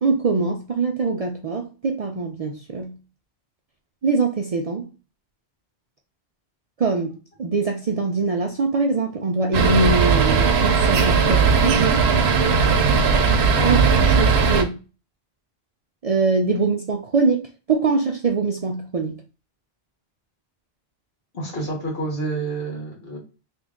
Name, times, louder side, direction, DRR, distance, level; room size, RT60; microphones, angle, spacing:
voice 1, 0.0-2.9 4.0-4.9 6.8-12.0 13.6-13.8 14.2-14.8 16.0-19.2, right 4 dB, 55° right, 2 dB, 0.4 m, -23 dB
sound 1, 9.5-14.6, right 5 dB, 85° right, 0.9 m, -18 dB
voice 2, 21.3-23.2, right 2 dB, 70° left, -1 dB, 1.5 m, -28 dB
3.0 x 2.6 x 3.6 m, 0.32 s
omnidirectional pair, 1.0 m